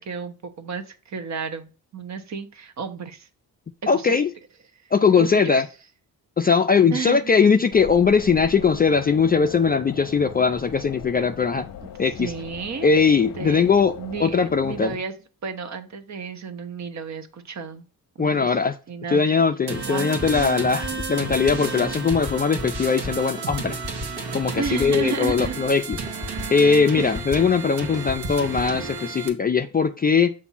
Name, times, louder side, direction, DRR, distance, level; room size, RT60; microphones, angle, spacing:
voice 1, 0.0-3.3 3.8-4.2 5.2-5.6 6.9-7.3 11.8-11.9 12.2-12.9 13.1-13.7 14.0-15.1 15.4-17.8 18.1-18.6 18.9-19.2 19.9-20.1 24.6-25.6 27.0-27.3, right 5 dB, 45° right, 9 dB, 0.8 m, -32 dB
voice 2, 3.9-4.3 4.9-5.7 6.4-11.7 12.0-12.3 12.8-14.9 18.2-18.8 19.1-23.8 24.3-26.0 26.5-30.3, left 5 dB, 25° left, 7 dB, 0.3 m, -20 dB
sound 1, 7.7-15.0, left 9 dB, 60° left, 0.7 m, -40 dB
sound 2, 19.7-29.3, right 4 dB, 85° right, 1.2 m, -32 dB
sound 3, 20.1-26.7 27.0-28.8, left 2 dB, 10° right, 0.8 m, -37 dB
7.0 x 2.6 x 5.5 m, 0.35 s
cardioid pair, 110°, 38 cm